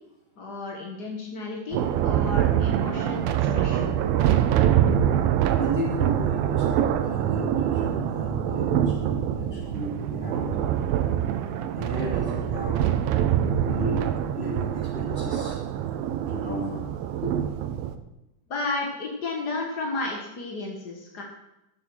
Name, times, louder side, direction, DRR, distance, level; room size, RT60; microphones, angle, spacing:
voice 1, 0.4-4.0 18.5-21.2, left 3 dB, 65° left, 0 dB, 1.0 m, -33 dB
Thunder, 1.7-17.9, right 10 dB, 85° right, 2.5 m, -25 dB
voice 2, 5.5-10.5 11.7-12.9 13.6-14.1 14.3-15.6 16.3-16.8 17.2-17.4, right 1 dB, 20° right, -5 dB, 2.5 m, -32 dB
13.0 x 7.2 x 6.2 m, 0.91 s
omnidirectional pair, 4.1 m